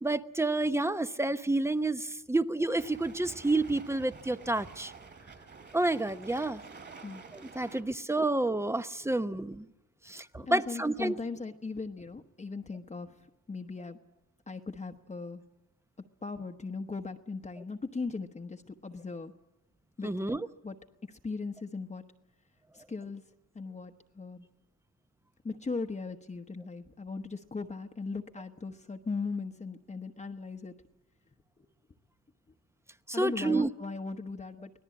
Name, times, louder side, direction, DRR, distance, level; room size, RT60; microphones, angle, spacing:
voice 1, 0.0-4.9 5.7-6.6 7.3-9.6 10.1-11.1 20.0-20.5 33.1-33.7, right 2 dB, 10° right, 11 dB, 0.8 m, -29 dB
sound 1, 2.7-7.8, right 4 dB, 35° right, 3.5 m, -49 dB
voice 2, 10.3-13.2 13.5-14.0 14.5-15.4 16.2-19.3 20.0-20.1 20.6-20.8 21.0-22.0 22.7-23.2 23.5-24.4 25.4-30.7 31.6-31.7 33.1-34.7, left 4 dB, 25° left, 4 dB, 1.1 m, -38 dB
24.5 x 18.0 x 8.6 m, 0.94 s
cardioid pair, 90°, 30 cm